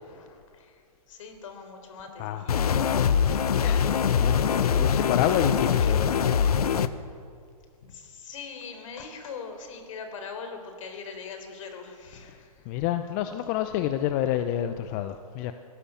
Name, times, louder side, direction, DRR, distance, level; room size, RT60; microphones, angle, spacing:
voice 1, 0.0-2.6 5.8-6.0 7.9-12.7, left 5 dB, 55° left, 6 dB, 4.0 m, -42 dB
sound 1, 2.5-6.9, left 7 dB, 75° left, 1.1 m, -23 dB
voice 2, 3.1-6.4 12.2-15.5, left 11 dB, 25° left, 9 dB, 0.7 m, -29 dB
23.0 x 16.0 x 7.2 m, 2.3 s
hypercardioid pair, 150°, 19 cm